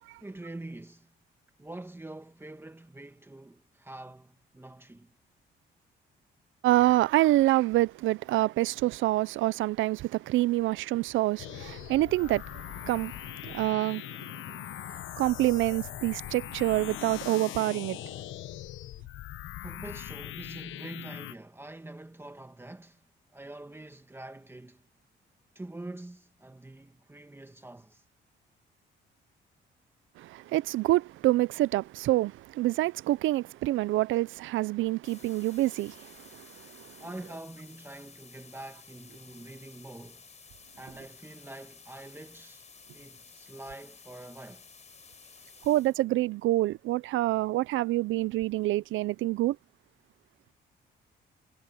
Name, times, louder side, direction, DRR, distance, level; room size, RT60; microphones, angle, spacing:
voice 1, 0.2-1.1 1.6-5.1 19.6-23.0 23.3-24.8 25.6-28.0 37.0-40.2 40.8-42.7 42.9-44.6, right 2 dB, 10° right, 1.8 m, -45 dB
voice 2, 6.6-18.1 30.2-37.0 45.6-49.6, right 16 dB, 85° right, 0.6 m, -27 dB
sound 1, 11.4-21.3, left 14 dB, 85° left, 1.0 m, -41 dB
sound 2, 35.0-46.0, left 5 dB, 35° left, 3.9 m, -53 dB
cardioid pair, 90°, 20 cm